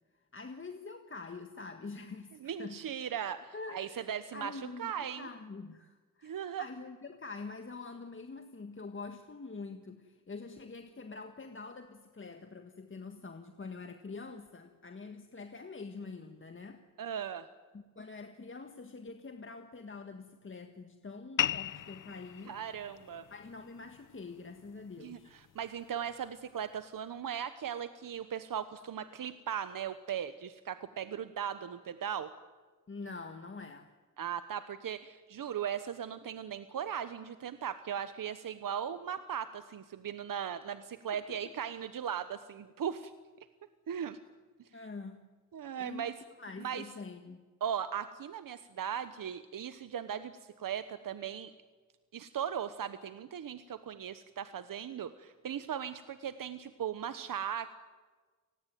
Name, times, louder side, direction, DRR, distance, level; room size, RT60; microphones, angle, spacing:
voice 1, 0.1-2.8 3.5-16.8 17.7-22.5 23.3-25.3 32.9-33.9 41.1-41.5 44.7-45.2 45.8-46.1 46.4-47.4, left 4 dB, 40° left, 6 dB, 1.7 m, -45 dB
voice 2, 2.4-5.2 6.2-6.7 17.0-17.5 22.5-23.2 25.0-32.3 34.2-43.1 43.9-44.2 45.5-46.1 46.6-46.8 47.6-51.5 52.1-57.7, right 8 dB, 90° right, 12 dB, 1.0 m, -38 dB
sound 1, 21.4-26.4, left 10 dB, 70° left, 0.8 m, -39 dB
30.0 x 19.5 x 9.3 m, 1.4 s
wide cardioid pair, 90°, 32 cm